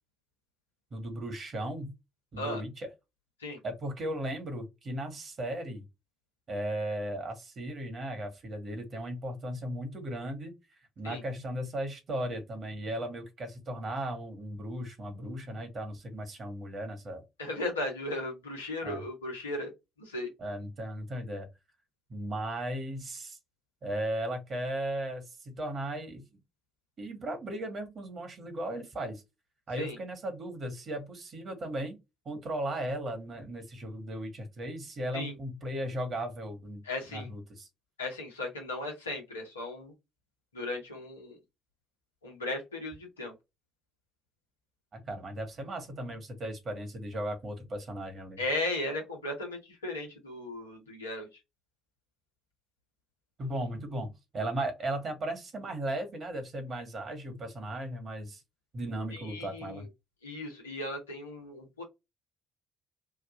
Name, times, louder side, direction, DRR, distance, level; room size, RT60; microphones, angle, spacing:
voice 1, 0.9-1.9 2.3-2.9 3.6-5.9 6.5-10.5 11.0-17.2 18.8-19.0 20.4-21.5 22.1-23.4 23.8-26.2 27.0-29.2 29.7-32.0 32.2-36.8 37.1-37.7 44.9-48.4 53.4-58.4 58.7-59.9, right 1 dB, 50° right, 1.6 m, -36 dB
voice 2, 17.4-19.7 20.0-20.3 29.8-30.0 35.1-35.3 36.8-37.3 38.0-39.9 40.5-41.4 42.2-43.3 48.4-51.3 59.1-59.9 60.2-61.8, left 2 dB, 85° left, 0.9 m, -36 dB
3.7 x 2.4 x 2.5 m
figure-of-eight pair, 45°, 0 cm